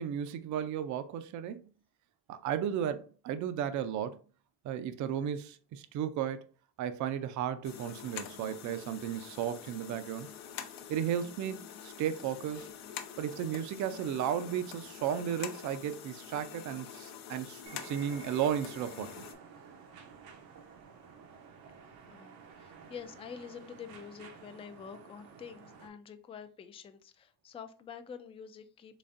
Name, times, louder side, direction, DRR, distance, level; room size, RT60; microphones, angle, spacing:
voice 1, 0.0-1.6 2.3-4.2 4.6-6.5 6.8-10.3 10.9-12.7 13.2-19.3, right 9 dB, 60° right, 0.5 m, -34 dB
sound 1, 7.6-19.3, left 8 dB, 90° left, 0.7 m, -46 dB
sound 2, 17.6-25.9, right 6 dB, 85° right, 0.9 m, -52 dB
voice 2, 22.0-29.0, left 7 dB, 20° left, 0.3 m, -47 dB
3.9 x 3.3 x 2.5 m
cardioid pair, 120°, 34 cm